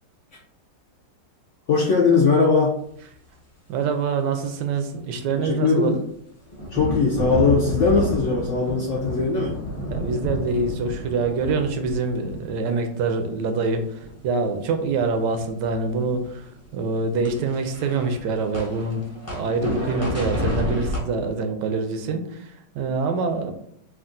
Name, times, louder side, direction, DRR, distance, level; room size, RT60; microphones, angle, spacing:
voice 1, 1.7-2.7 5.4-6.0 6.7-9.6, left 4 dB, 65° left, -3 dB, 0.7 m, -20 dB
voice 2, 3.7-5.9 9.9-19.0 19.3-23.5, right 4 dB, 80° right, 6 dB, 1.2 m, -25 dB
sound 1, 6.5-13.4 13.8-14.4 14.7-21.0, left 1 dB, 15° left, 0.5 m, -30 dB
3.5 x 2.3 x 3.7 m, 0.68 s
omnidirectional pair, 1.9 m